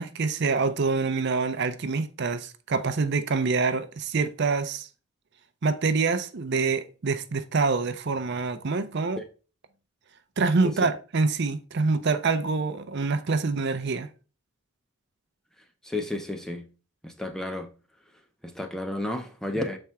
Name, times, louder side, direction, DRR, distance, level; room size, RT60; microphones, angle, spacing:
voice 1, 0.0-4.9 5.6-9.2 10.4-14.1, right 4 dB, 50° right, 0.5 m, -26 dB
voice 2, 15.8-16.7 17.0-17.7 18.4-19.8, left 1 dB, ahead, 0.6 m, -32 dB
6.8 x 4.3 x 3.5 m
head